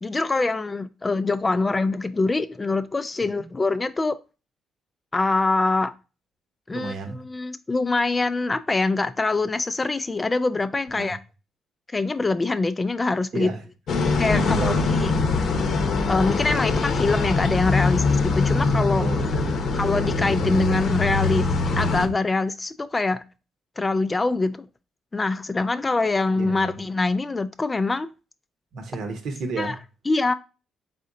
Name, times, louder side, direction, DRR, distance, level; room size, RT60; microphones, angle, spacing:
voice 1, 0.0-4.2 5.1-5.9 6.7-11.2 11.9-13.5 14.2-14.7 15.0-15.1 16.1-19.1 19.7-21.5 21.8-23.2 23.8-24.6 25.1-28.1 29.6-29.7 30.1-30.3, left 3 dB, 25° left, 0.3 m, -24 dB
voice 2, 6.7-7.2 10.9-11.1 13.3-13.6 14.3-15.2 19.0-19.6 26.3-26.8 28.7-29.8, right 4 dB, 70° right, 1.0 m, -32 dB
sound 1, 13.9-22.1, left 3 dB, 65° left, 0.7 m, -23 dB
4.2 x 3.7 x 2.6 m
cardioid pair, 90°, 0 cm